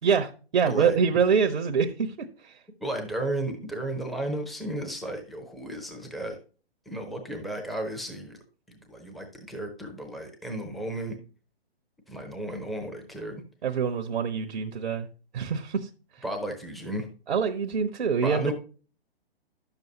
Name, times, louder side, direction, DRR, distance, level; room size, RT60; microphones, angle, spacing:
voice 1, 0.0-2.6 13.6-15.1 15.3-15.9 17.3-18.5, right 6 dB, 65° right, 6 dB, 0.9 m, -25 dB
voice 2, 0.7-1.0 2.8-6.4 6.9-8.4 8.9-11.2 12.1-13.4 16.2-17.1 18.2-18.5, right 1 dB, ahead, 3 dB, 0.7 m, -33 dB
10.5 x 6.9 x 2.8 m, 0.37 s
figure-of-eight pair, 130°, 32 cm